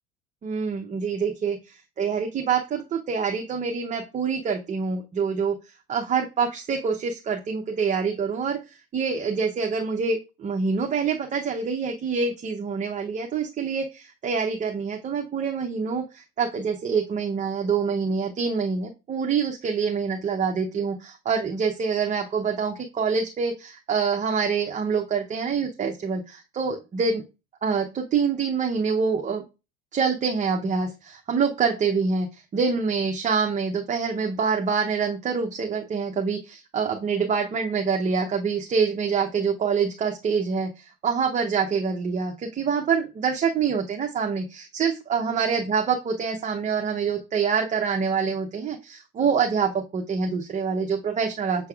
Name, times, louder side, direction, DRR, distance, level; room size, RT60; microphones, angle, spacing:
voice 1, 0.4-5.6 5.9-27.2 27.6-29.4 29.9-51.7, right 5 dB, 25° right, 2 dB, 0.6 m, -26 dB
6.6 x 3.4 x 2.3 m, 0.27 s
supercardioid pair, 110°, 29 cm